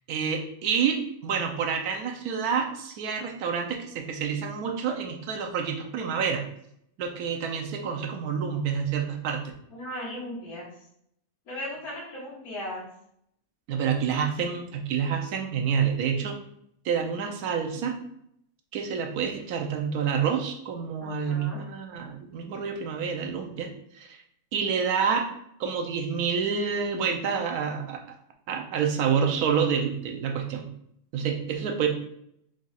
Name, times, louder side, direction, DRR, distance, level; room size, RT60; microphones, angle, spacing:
voice 1, 0.1-1.0 1.2-6.4 7.0-9.4 13.7-16.3 16.8-17.9 18.7-23.7 23.9-24.2 24.5-25.2 25.6-28.0 28.5-30.7 31.1-31.9, right 6 dB, 80° right, 3 dB, 1.2 m, -28 dB
voice 2, 9.7-10.7 11.5-12.9 21.0-21.6, left 1 dB, 70° left, -6 dB, 1.9 m, -37 dB
4.9 x 2.4 x 4.0 m, 0.72 s
omnidirectional pair, 1.6 m